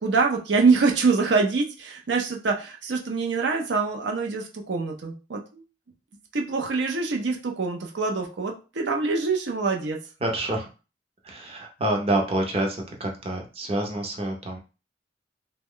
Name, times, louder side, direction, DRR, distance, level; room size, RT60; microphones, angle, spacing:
voice 1, 0.0-5.6 6.3-10.0, right 4 dB, 75° right, 2 dB, 0.5 m, -25 dB
voice 2, 10.2-10.7 11.2-14.6, right 1 dB, 30° right, 1 dB, 0.6 m, -27 dB
3.0 x 2.2 x 3.7 m, 0.32 s
head